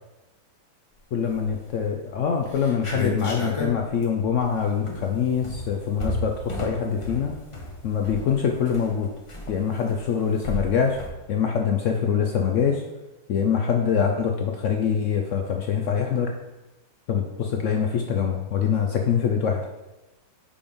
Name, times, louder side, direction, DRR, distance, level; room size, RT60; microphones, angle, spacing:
voice 1, 1.1-7.3 7.8-9.1 9.5-11.0 11.3-12.8 13.3-16.3 17.1-19.7, left 7 dB, 85° left, 3 dB, 0.6 m, -24 dB
sound 1, 1.3-1.8 2.1-2.2 2.4-11.1, left 2 dB, 30° left, 0.6 m, -33 dB
6.8 x 5.1 x 3.5 m, 1.0 s
omnidirectional pair, 1.9 m